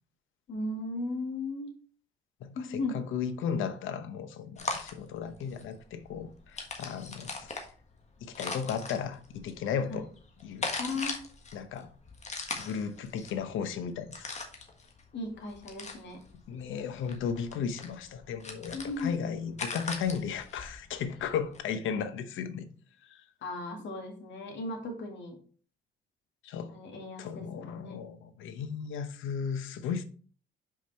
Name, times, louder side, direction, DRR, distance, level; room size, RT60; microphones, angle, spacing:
voice 1, 0.5-1.7 2.5-3.0 9.9-10.0 10.8-11.2 15.1-16.2 18.7-19.1 23.4-25.3 26.7-27.3 27.6-28.0, left 2 dB, 65° left, 2.3 m, -36 dB
voice 2, 2.4-7.5 8.2-10.1 10.4-10.7 11.5-11.9 12.6-14.3 16.5-22.7 23.1-23.2 26.4-26.7 27.2-30.0, left 7 dB, 80° left, 0.9 m, -35 dB
sound 1, 4.6-21.6, left 3 dB, 35° left, 1.5 m, -41 dB
5.7 x 4.8 x 4.2 m
cardioid pair, 90°, 20 cm